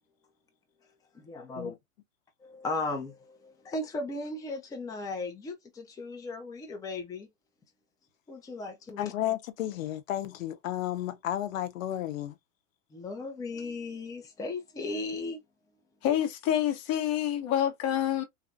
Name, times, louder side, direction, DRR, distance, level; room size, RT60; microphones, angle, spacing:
voice 1, 1.1-1.7 2.4-7.3 8.3-9.1 12.9-15.4, left 2 dB, 10° left, 0.6 m, -36 dB
voice 2, 9.0-12.4, left 12 dB, 85° left, 0.6 m, -33 dB
voice 3, 16.0-18.2, left 11 dB, 40° left, 1.0 m, -27 dB
3.2 x 2.3 x 2.5 m
hypercardioid pair, 115°, 39 cm